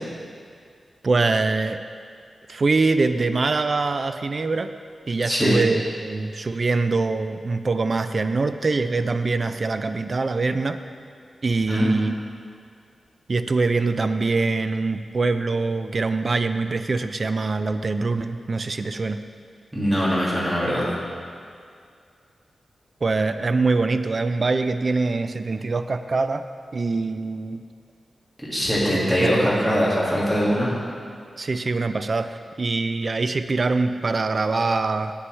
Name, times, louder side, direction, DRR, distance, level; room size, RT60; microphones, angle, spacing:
voice 1, 1.0-1.8 2.5-4.7 5.1-10.8 11.4-12.1 13.3-19.2 23.0-26.4 26.7-27.6 28.9-29.3 31.4-35.1, right 3 dB, 45° right, 10 dB, 0.4 m, -23 dB
voice 2, 5.3-5.6 11.7-11.9 19.7-20.9 28.4-30.7, equal, 15° right, -7 dB, 2.0 m, -22 dB
9.7 x 8.5 x 3.2 m, 2.3 s
wide cardioid pair, 125°, 0 cm